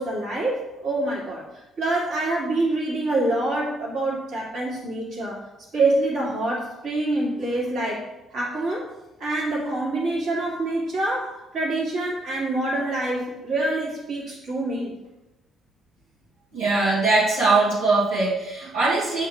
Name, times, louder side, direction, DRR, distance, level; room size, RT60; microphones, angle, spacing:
voice 1, 0.0-1.4 1.8-5.4 5.7-8.0 8.3-8.8 9.2-15.0, right 2 dB, 55° right, -4 dB, 2.7 m, -26 dB
voice 2, 16.5-19.3, right 3 dB, 80° right, -10 dB, 2.5 m, -21 dB
7.9 x 3.7 x 6.5 m, 0.98 s
figure-of-eight pair, 45°, 0 cm